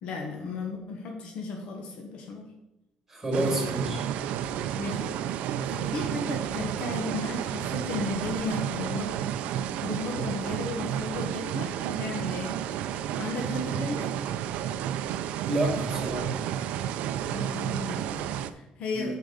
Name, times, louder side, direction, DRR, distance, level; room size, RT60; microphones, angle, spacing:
voice 1, 0.0-2.5 3.3-3.6 4.8-5.2 5.6-9.2 9.8-12.6 13.1-14.1 17.2-19.1, left 3 dB, 55° left, 1 dB, 1.2 m, -35 dB
voice 2, 3.1-4.1 15.5-16.3 18.9-19.2, right 1 dB, 10° right, 0 dB, 2.1 m, -29 dB
sound 1, 3.3-18.5, right 10 dB, 80° right, 0.4 m, -31 dB
13.0 x 4.7 x 3.9 m, 0.94 s
cardioid pair, 175°, 2 cm